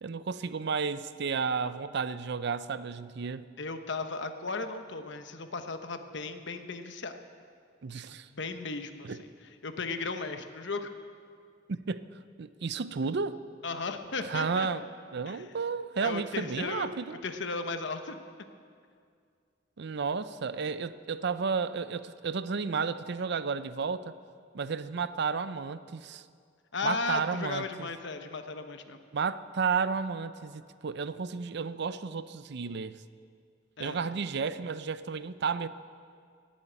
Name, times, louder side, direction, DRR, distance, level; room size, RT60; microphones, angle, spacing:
voice 1, 0.0-3.5 7.8-8.3 9.0-9.2 11.7-12.0 12.4-13.4 14.2-14.8 15.1-17.2 19.8-24.1 24.5-26.2 26.8-27.9 29.1-33.0 33.8-35.7, right 5 dB, 60° right, 14 dB, 0.5 m, -32 dB
voice 2, 3.6-7.1 8.1-9.3 9.6-10.9 13.6-14.7 15.3-15.5 16.0-16.9 17.2-18.2 26.7-29.0 33.8-34.0, left 4 dB, 65° left, 8 dB, 1.0 m, -35 dB
18.0 x 8.6 x 8.8 m, 2.2 s
head